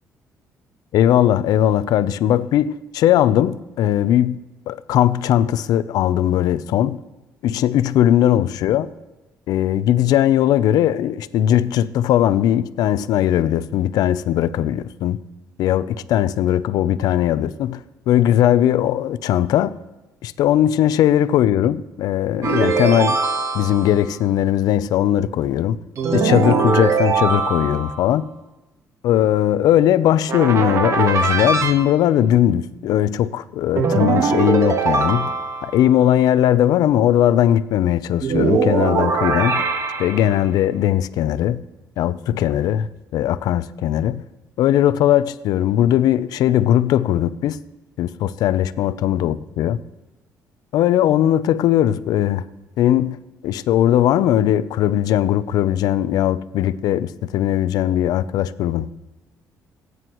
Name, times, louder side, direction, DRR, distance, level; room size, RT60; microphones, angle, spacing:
voice 1, 0.9-4.4 4.7-7.0 7.4-8.9 9.5-15.2 15.6-17.8 18.1-19.8 20.2-23.2 23.5-25.8 26.1-28.2 29.0-35.3 35.6-39.6 40.0-41.6 42.0-42.9 43.1-44.2 44.6-47.6 48.0-49.8 50.7-52.4 52.8-53.2 53.4-58.9, left 11 dB, 75° left, 0.6 m, -19 dB
sound 1, 22.4-24.0 26.0-28.1 30.3-31.7 33.8-35.9 38.2-40.4, right 5 dB, 45° right, 1.5 m, -21 dB
27.0 x 9.5 x 3.1 m
cardioid pair, 120°, 7 cm